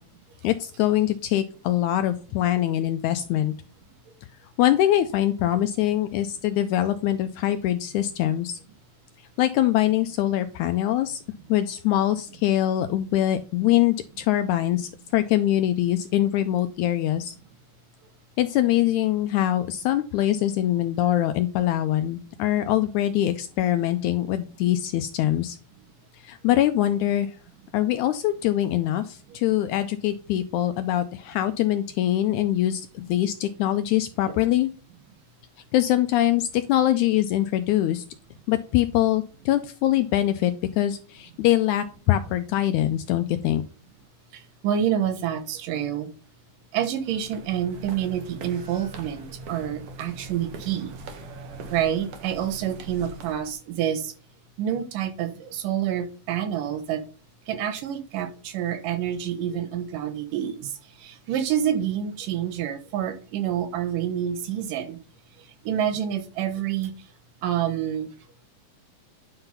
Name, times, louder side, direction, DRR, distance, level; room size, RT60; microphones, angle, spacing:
voice 1, 0.4-3.5 4.6-8.6 9.4-11.2 11.5-17.4 18.4-25.6 26.2-27.3 27.7-34.7 35.7-38.0 38.5-43.6, left 13 dB, 80° left, 9 dB, 1.7 m, -23 dB
voice 2, 44.3-46.1 46.7-51.0 51.7-54.1 54.6-57.0 57.5-65.0 65.4-66.9 67.4-68.1, right 10 dB, 80° right, 7 dB, 2.6 m, -28 dB
sound 1, 47.0-53.5, right 3 dB, 60° right, 1.8 m, -41 dB
9.8 x 3.9 x 5.5 m, 0.37 s
omnidirectional pair, 3.8 m